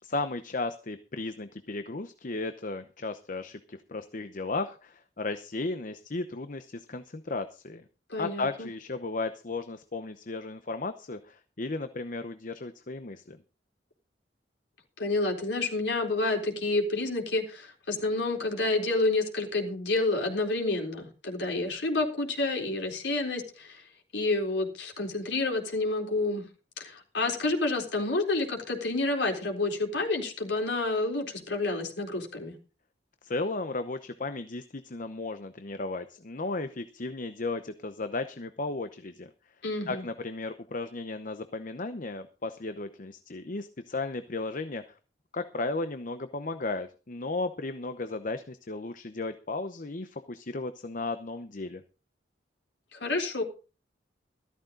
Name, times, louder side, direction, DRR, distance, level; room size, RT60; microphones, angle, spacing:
voice 1, 0.0-7.8 8.2-13.4 33.2-39.3 39.9-45.0 45.3-51.8, left 3 dB, 50° left, 10 dB, 0.9 m, -35 dB
voice 2, 8.1-8.7 15.0-23.8 24.1-26.4 26.8-32.6 39.6-40.0 52.9-53.4, left 2 dB, 80° left, 1 dB, 4.0 m, -29 dB
14.0 x 13.0 x 3.9 m, 0.34 s
head